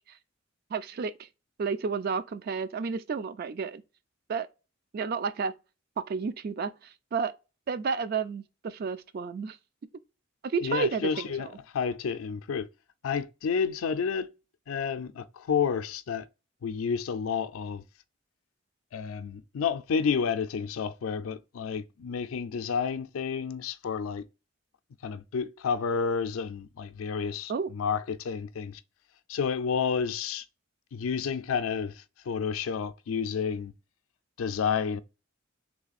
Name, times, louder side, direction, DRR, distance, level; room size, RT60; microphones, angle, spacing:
voice 1, 0.7-1.3 1.6-3.8 4.3-4.5 4.9-5.5 6.0-7.3 7.7-9.6 10.4-11.5 27.5-27.7, right 5 dB, 50° right, 0.3 m, -31 dB
voice 2, 10.6-11.5 11.7-12.7 13.0-14.3 14.7-16.3 16.6-17.8 18.9-24.2 25.0-28.8 29.3-30.4 30.9-33.7 34.4-35.0, left 6 dB, 80° left, 0.4 m, -30 dB
3.3 x 3.1 x 4.0 m
head